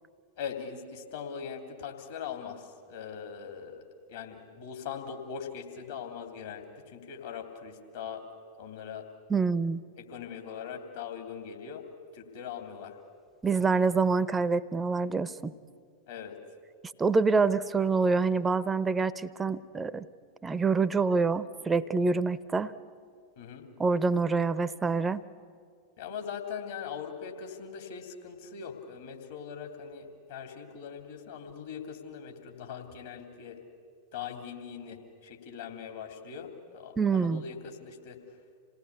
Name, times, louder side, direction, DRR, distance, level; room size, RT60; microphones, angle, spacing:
voice 1, 0.4-8.2 8.6-9.1 10.0-11.8 12.1-13.0 16.1-16.4 23.4-23.7 26.0-33.6 34.1-38.2, left 7 dB, 55° left, 4 dB, 3.0 m, -41 dB
voice 2, 9.3-9.8 13.4-15.5 17.0-20.0 20.4-22.7 23.8-25.2 37.0-37.4, right 4 dB, 15° right, 16 dB, 0.7 m, -26 dB
27.5 x 18.0 x 8.4 m, 2.2 s
figure-of-eight pair, 90°, 0 cm